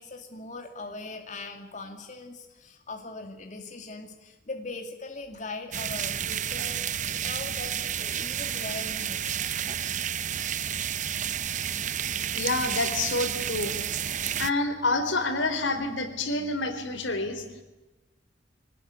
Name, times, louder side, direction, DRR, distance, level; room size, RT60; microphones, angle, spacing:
voice 1, 0.0-6.8 7.1-9.5, left 3 dB, 40° left, 4 dB, 2.5 m, -40 dB
sound 1, 5.7-14.5, right 9 dB, 40° right, 0.7 m, -31 dB
voice 2, 12.3-13.8 14.4-17.4, left 2 dB, 80° left, 8 dB, 4.1 m, -28 dB
24.5 x 19.5 x 9.5 m, 1.1 s
head